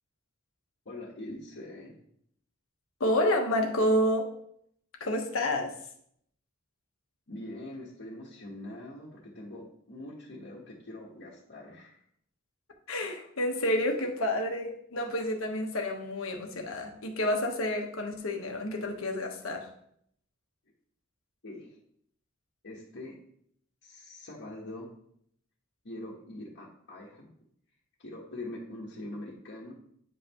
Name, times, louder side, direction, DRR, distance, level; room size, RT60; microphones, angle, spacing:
voice 1, 0.8-2.0 7.3-12.0 21.4-21.8 22.6-23.2 23.8-24.9 25.8-27.3 28.0-29.7, left 1 dB, 60° left, -5 dB, 1.3 m, -43 dB
voice 2, 3.0-4.3 5.0-5.7 12.9-19.7, left 1 dB, 80° left, 3 dB, 1.2 m, -29 dB
8.9 x 5.5 x 3.0 m, 0.69 s
head